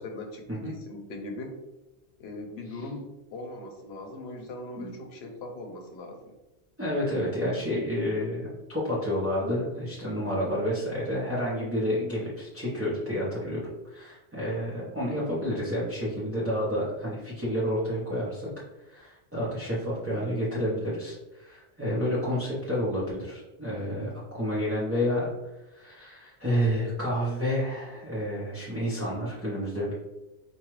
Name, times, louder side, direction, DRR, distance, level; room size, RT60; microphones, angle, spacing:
voice 1, 0.0-1.5 2.2-6.3, left 2 dB, 70° left, 3 dB, 0.9 m, -40 dB
voice 2, 6.8-18.5 18.8-25.3 25.7-29.9, equal, 15° right, -8 dB, 0.7 m, -30 dB
4.5 x 2.4 x 3.1 m, 1.0 s
omnidirectional pair, 1.1 m